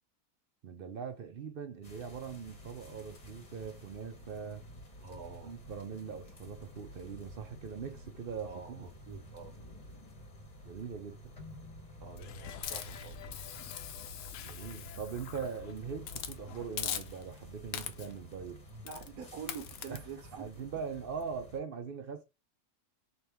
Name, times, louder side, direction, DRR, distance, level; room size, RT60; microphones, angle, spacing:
voice 1, 0.6-4.6 5.4-8.9 10.6-11.3 14.4-18.6 19.9-20.0 20.3-22.2, right 6 dB, 55° right, 0.6 m, -41 dB
sound 1, 1.8-21.6, equal, 30° left, 1.0 m, -51 dB
voice 2, 5.0-5.6 8.5-9.5 12.0-13.3 18.7-20.5, right 5 dB, 85° right, 1.2 m, -46 dB
sound 2, 12.1-17.1, left 8 dB, 70° left, 0.9 m, -49 dB
Hiss, 12.6-15.5 16.0-16.4 16.8-17.4 17.7-18.2 18.9-19.1 19.5-20.0, left 9 dB, 85° left, 1.1 m, -41 dB
4.3 x 2.9 x 3.4 m
omnidirectional pair, 1.5 m